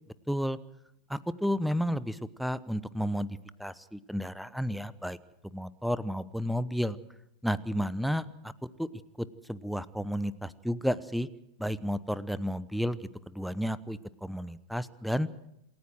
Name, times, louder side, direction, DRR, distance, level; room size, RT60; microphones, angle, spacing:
voice 1, 0.3-0.6 1.1-5.2 5.5-7.0 7.4-8.9 9.2-11.3 11.6-15.3, equal, ahead, 18 dB, 0.9 m, -32 dB
27.5 x 15.0 x 7.9 m, 0.83 s
figure-of-eight pair, 90°, 0 cm